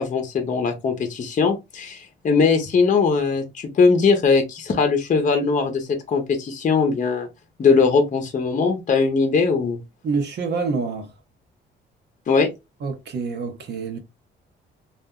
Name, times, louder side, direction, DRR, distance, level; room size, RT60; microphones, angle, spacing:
voice 1, 0.0-7.3 7.6-9.8 12.3-12.5, left 4 dB, 40° left, 0.7 m, -20 dB
voice 2, 10.0-11.1 12.8-14.0, right 4 dB, 60° right, 0.8 m, -26 dB
2.4 x 2.0 x 3.6 m
cardioid pair, 90°, 20 cm